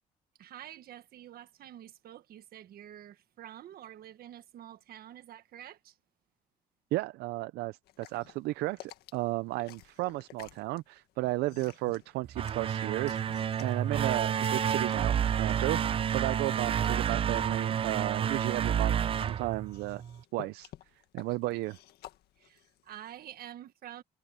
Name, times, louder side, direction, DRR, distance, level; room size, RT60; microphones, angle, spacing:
voice 1, 0.4-6.0 22.4-24.0, right 11 dB, 70° right, 1.5 m, -48 dB
voice 2, 6.9-13.2 13.6-20.0 20.3-20.7 21.1-21.8, right 19 dB, 90° right, 0.5 m, -34 dB
sound 1, 7.8-23.4, left 13 dB, 80° left, 1.8 m, -54 dB
sound 2, 12.2-20.2, right 8 dB, 35° right, 0.4 m, -30 dB
cardioid pair, 95°, 16 cm